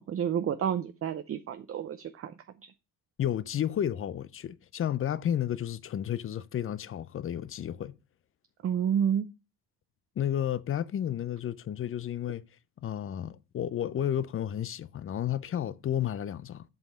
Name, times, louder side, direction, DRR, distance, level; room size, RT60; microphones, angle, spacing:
voice 1, 0.0-2.4 8.6-9.3, right 8 dB, 40° right, 0.6 m, -30 dB
voice 2, 3.2-8.0 10.2-12.4 12.8-16.6, left 10 dB, 35° left, 0.5 m, -32 dB
8.0 x 5.3 x 5.5 m
cardioid pair, 120°, 36 cm